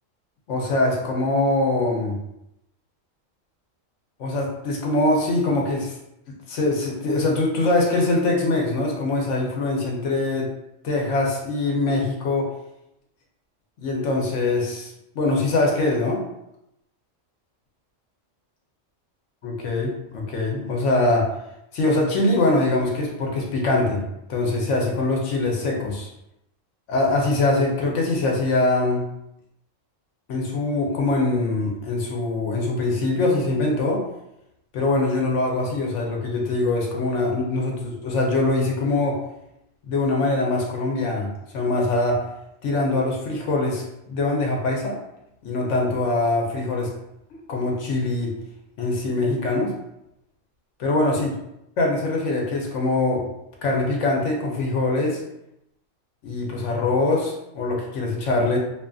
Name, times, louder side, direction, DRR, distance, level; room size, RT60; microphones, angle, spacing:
voice 1, 0.5-2.2 4.2-6.0 6.5-10.5 10.8-12.5 13.8-16.2 19.4-21.3 21.7-24.0 24.3-26.1 26.9-29.0 30.3-34.0 34.7-39.2 39.9-42.2 42.6-45.0 45.4-46.9 47.5-48.3 48.8-49.7 50.8-51.3 51.8-53.2 53.6-55.2 56.2-58.6, left 2 dB, 70° left, -1 dB, 0.9 m, -23 dB
2.6 x 2.4 x 2.3 m, 0.84 s
omnidirectional pair, 1.3 m